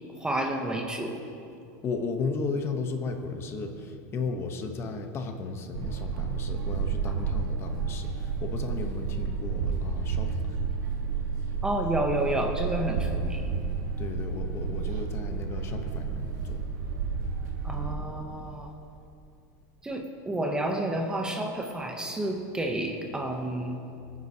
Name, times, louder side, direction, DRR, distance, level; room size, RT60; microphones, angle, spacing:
voice 1, 0.2-1.2 7.2-7.4 11.6-13.5 17.6-18.7 19.8-23.8, right 1 dB, 10° right, 3 dB, 0.7 m, -30 dB
voice 2, 1.8-10.6 14.0-16.6, left 4 dB, 25° left, 5 dB, 0.9 m, -34 dB
sound 1, 5.7-17.9, right 5 dB, 85° right, 1.3 m, -31 dB
23.0 x 9.6 x 2.8 m, 2.6 s
supercardioid pair, 155°, 9 cm